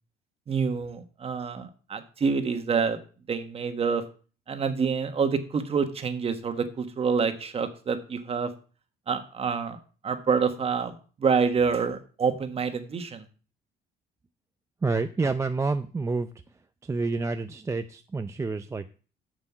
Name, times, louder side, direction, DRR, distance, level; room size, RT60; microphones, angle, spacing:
voice 1, 0.5-3.0 3.3-4.0 4.5-8.5 9.1-13.2, right 5 dB, 35° right, 8 dB, 1.5 m, -27 dB
voice 2, 14.8-16.3 16.8-18.9, right 3 dB, 15° right, 9 dB, 0.5 m, -28 dB
7.4 x 6.7 x 7.2 m, 0.38 s
cardioid pair, 110°, 17 cm